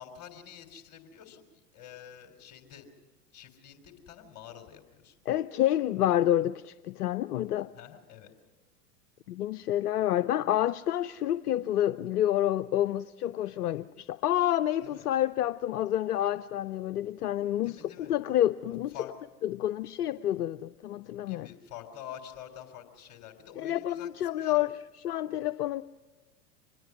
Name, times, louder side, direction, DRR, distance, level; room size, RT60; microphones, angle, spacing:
voice 1, 0.0-2.9 3.3-5.2 7.7-8.3 14.8-15.1 17.6-18.1 18.9-19.1 21.1-24.6, left 9 dB, 35° left, 3.7 m, -47 dB
voice 2, 5.3-7.7 9.3-18.9 19.4-21.5 23.6-24.8 25.0-25.8, left 12 dB, 70° left, 0.6 m, -28 dB
25.0 x 21.0 x 6.1 m
figure-of-eight pair, 95°, 47 cm